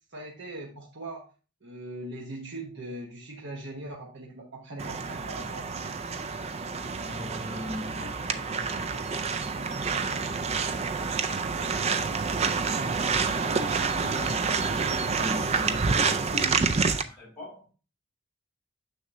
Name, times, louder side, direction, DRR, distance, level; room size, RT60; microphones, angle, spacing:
voice 1, 0.1-1.3 1.6-5.7, right 2 dB, 55° right, 1.2 m, -40 dB
sound 1, 4.8-17.0, right 5 dB, 30° right, 0.4 m, -28 dB
voice 2, 7.0-10.2 10.5-10.7 11.1-11.9 12.9-17.7, left 1 dB, 15° left, 3.8 m, -41 dB
6.5 x 6.3 x 2.6 m
head